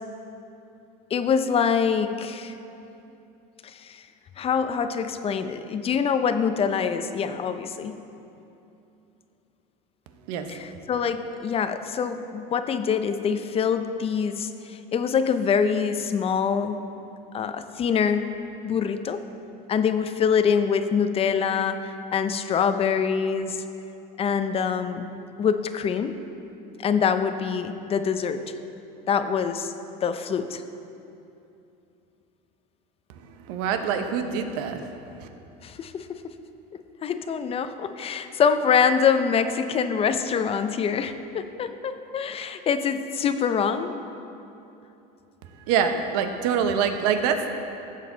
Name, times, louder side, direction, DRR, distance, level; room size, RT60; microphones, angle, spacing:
voice 1, 1.1-2.6 3.6-4.0 4.4-8.0 10.5-16.8 17.3-18.3 18.6-19.2 19.7-23.6 24.2-25.1 25.4-26.2 26.8-28.4 29.1-29.7 30.0-30.6 35.6-36.3 37.0-43.9, left 6 dB, 30° left, 9 dB, 0.6 m, -25 dB
voice 2, 33.5-34.8 35.2-35.3 45.7-47.5, right 7 dB, 75° right, 6 dB, 1.0 m, -25 dB
15.5 x 7.5 x 4.0 m, 2.8 s
supercardioid pair, 115°, 20 cm